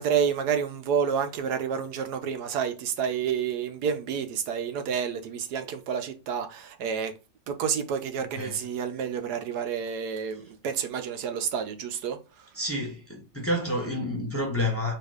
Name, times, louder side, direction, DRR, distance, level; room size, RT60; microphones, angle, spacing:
voice 1, 0.0-7.1 7.5-12.2, right 7 dB, 80° right, 1.3 m, -29 dB
voice 2, 12.6-15.0, left 1 dB, 10° left, 1.0 m, -29 dB
4.5 x 2.4 x 4.8 m
omnidirectional pair, 1.7 m